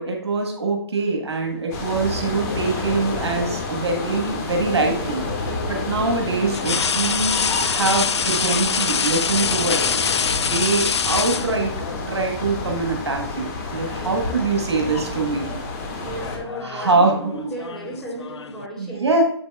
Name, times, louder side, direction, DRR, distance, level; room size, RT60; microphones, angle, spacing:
voice 1, 0.0-9.8 10.4-11.7 12.1-15.5 16.6-17.1 18.8-19.2, right 3 dB, 80° right, 2 dB, 1.3 m, -23 dB
sound 1, 1.7-16.4, left 3 dB, 40° left, 1.8 m, -29 dB
sound 2, 2.2-3.1 4.8-5.0 6.5-12.0 13.2-13.4 13.8-14.5 14.8-15.2 16.0-18.7, left 6 dB, 85° left, 0.4 m, -25 dB
voice 2, 5.4-5.8 13.8-14.8 15.9-19.2, right 1 dB, 5° left, -6 dB, 2.9 m, -35 dB
8.0 x 6.9 x 2.3 m, 0.71 s
figure-of-eight pair, 135°, 14 cm